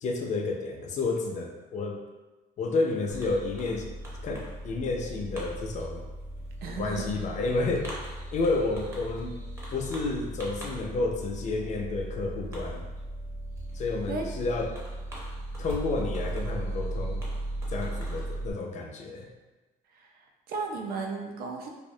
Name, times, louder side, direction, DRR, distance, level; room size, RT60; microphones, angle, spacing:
voice 1, 0.0-2.0 2.6-3.9 4.2-6.0 6.8-7.9 8.3-9.4 9.7-12.8 13.7-14.8 15.6-17.2 17.7-19.3, left 3 dB, 45° left, 2 dB, 0.4 m, -30 dB
Fireworks, 3.1-18.5, right 1 dB, 15° right, 0.6 m, -37 dB
voice 2, 6.6-7.1 14.1-14.2 19.9-20.1 20.5-21.7, right 4 dB, 65° right, 2 dB, 0.4 m, -34 dB
2.3 x 2.0 x 2.6 m, 1.2 s
cardioid pair, 110°, 17 cm